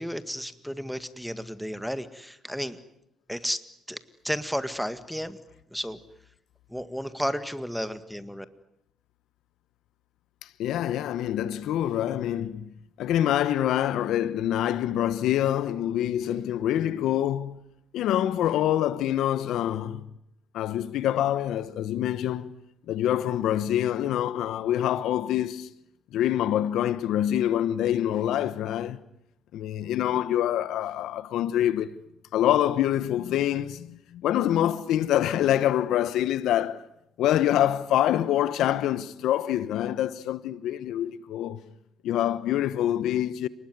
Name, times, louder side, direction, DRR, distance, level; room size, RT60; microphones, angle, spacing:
voice 1, 0.0-2.8 3.3-3.6 3.9-4.0 4.2-5.4 5.7-6.0 6.7-8.5, equal, ahead, 1.9 m, -32 dB
voice 2, 10.6-12.6 13.0-17.6 17.9-20.1 20.5-22.5 22.9-25.7 26.1-29.0 29.5-31.9 32.3-36.8 37.2-41.6 42.0-43.5, left 11 dB, 85° left, 1.1 m, -25 dB
29.0 x 20.5 x 9.6 m
cardioid pair, 90°, 0 cm